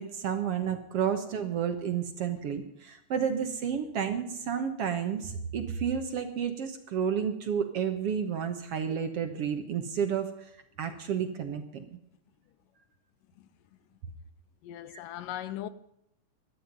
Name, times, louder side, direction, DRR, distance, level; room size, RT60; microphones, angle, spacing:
voice 1, 0.0-10.3 10.8-11.9 14.9-15.0, right 7 dB, 60° right, 1.8 m, -31 dB
voice 2, 14.6-15.7, left 12 dB, 90° left, 2.5 m, -38 dB
17.5 x 12.5 x 5.2 m
omnidirectional pair, 3.8 m